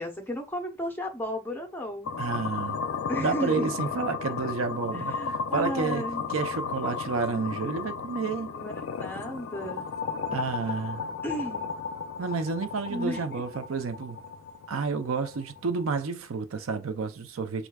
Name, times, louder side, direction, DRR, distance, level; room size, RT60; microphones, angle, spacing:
voice 1, 0.0-2.1 3.1-3.7 4.9-6.3 8.5-9.9 11.2-11.7 12.9-13.4, equal, 10° left, 0.7 m, -34 dB
sound 1, 2.1-16.1, left 5 dB, 80° left, 0.4 m, -34 dB
voice 2, 2.2-2.8 3.2-6.0 6.3-8.5 10.3-11.1 12.2-14.2 14.7-17.7, right 4 dB, 80° right, 0.5 m, -30 dB
4.5 x 2.5 x 2.3 m
head